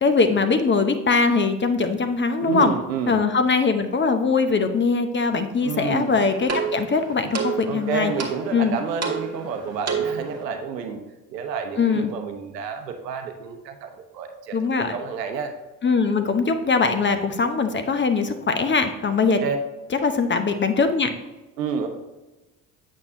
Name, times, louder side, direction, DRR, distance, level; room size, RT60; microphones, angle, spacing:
voice 1, 0.0-2.7 3.1-8.1 8.5-8.8 11.8-12.1 14.5-14.9 15.8-19.4 20.0-21.1, left 4 dB, 25° left, 8 dB, 0.8 m, -21 dB
voice 2, 2.4-3.2 5.6-6.2 7.7-11.0 11.3-14.6 14.9-15.5 19.3-19.6 21.6-21.9, right 5 dB, 80° right, 6 dB, 0.8 m, -29 dB
sound 1, 5.8-10.4, right 5 dB, 30° right, 1.7 m, -30 dB
8.5 x 6.3 x 2.7 m, 1.1 s
figure-of-eight pair, 55°, 48 cm